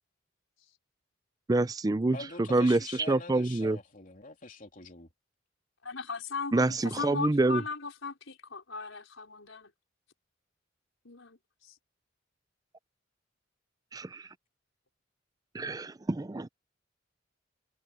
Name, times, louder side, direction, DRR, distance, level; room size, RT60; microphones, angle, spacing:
voice 1, 1.5-3.8 6.5-7.6 13.9-14.3 15.5-16.5, right 2 dB, 20° right, 0.4 m, -27 dB
voice 2, 2.1-5.1, left 3 dB, 45° left, 3.3 m, -44 dB
voice 3, 5.8-9.7 11.0-11.8, left 4 dB, 85° left, 4.5 m, -38 dB
head